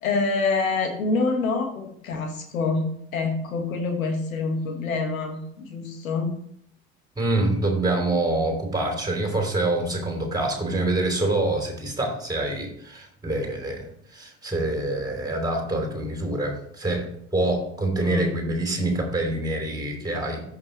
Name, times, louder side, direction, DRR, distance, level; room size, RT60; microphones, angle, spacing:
voice 1, 0.0-2.8 3.1-6.3 18.0-18.3, left 4 dB, 75° left, 6 dB, 1.4 m, -26 dB
voice 2, 7.2-20.4, right 2 dB, 10° right, 1 dB, 2.9 m, -26 dB
14.0 x 5.6 x 3.1 m, 0.69 s
figure-of-eight pair, 60°, 41 cm